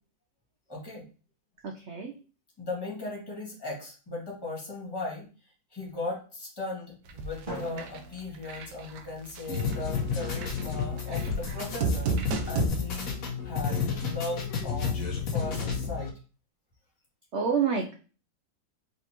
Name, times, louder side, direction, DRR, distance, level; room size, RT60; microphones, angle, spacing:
voice 1, 0.7-1.0 2.6-5.3 5.7-13.1 13.4-15.0 15.3-16.1, left 2 dB, 15° left, -4 dB, 2.0 m, -37 dB
voice 2, 1.6-2.1 17.3-17.9, right 6 dB, 85° right, 3 dB, 0.6 m, -28 dB
sound 1, 7.1-7.5 7.8-8.0 8.5-9.0 9.4-9.7 10.2-12.7, right 4 dB, 70° right, 1.3 m, -30 dB
Drum, 7.5-9.4, right 1 dB, 30° right, 1.6 m, -43 dB
sound 2, 9.5-16.1, left 6 dB, 55° left, 1.4 m, -31 dB
4.2 x 4.0 x 2.9 m, 0.36 s
omnidirectional pair, 1.9 m